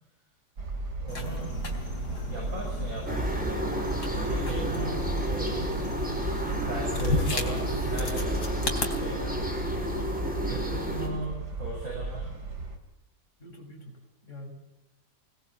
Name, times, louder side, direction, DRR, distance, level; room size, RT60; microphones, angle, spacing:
sound 1, 0.6-12.8, right 3 dB, 75° right, 3.4 m, -36 dB
voice 1, 1.0-1.5 2.3-5.0 5.3-6.0 6.6-10.1 10.3-11.3 11.6-12.3, right 2 dB, 55° right, -2 dB, 7.4 m, -38 dB
sound 2, 1.1-8.9, left 2 dB, 70° left, 4.3 m, -34 dB
sound 3, 3.1-11.1, equal, 5° right, 5.4 m, -31 dB
voice 2, 10.9-11.4 13.4-14.5, equal, 45° left, 2 dB, 7.0 m, -46 dB
25.0 x 20.0 x 8.5 m, 0.96 s
omnidirectional pair, 1.8 m